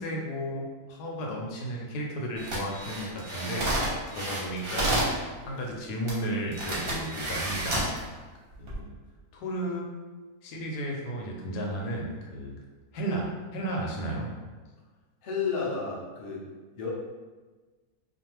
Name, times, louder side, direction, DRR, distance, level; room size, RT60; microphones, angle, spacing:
voice 1, 0.0-5.0 5.4-7.9 8.6-8.9 9.3-9.9 10.4-12.6 12.9-14.3, right 1 dB, 85° left, -1 dB, 1.2 m, -33 dB
sound 1, 2.4-5.2 6.1-6.2 6.5-8.0 8.5-8.8, right 1 dB, 50° right, 0.8 m, -30 dB
voice 2, 15.2-16.5 16.7-16.9, left 5 dB, 55° left, -5 dB, 0.6 m, -31 dB
2.5 x 2.4 x 2.9 m, 1.3 s
omnidirectional pair, 1.7 m